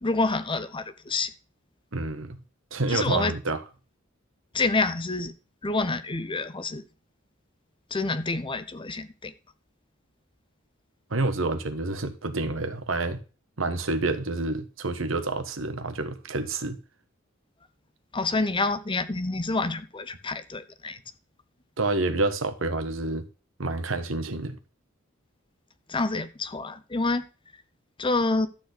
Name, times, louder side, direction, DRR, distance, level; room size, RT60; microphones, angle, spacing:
voice 1, 0.0-1.3 2.9-3.3 4.5-5.3 5.6-6.8 7.9-9.3 18.1-21.0 25.9-27.2 28.0-28.5, left 3 dB, 25° left, 0.8 m, -27 dB
voice 2, 1.9-2.4 2.7-3.6 11.1-13.2 13.6-16.8 21.8-23.3 23.6-24.6, right 2 dB, 75° right, 1.4 m, -28 dB
13.0 x 4.4 x 8.3 m
head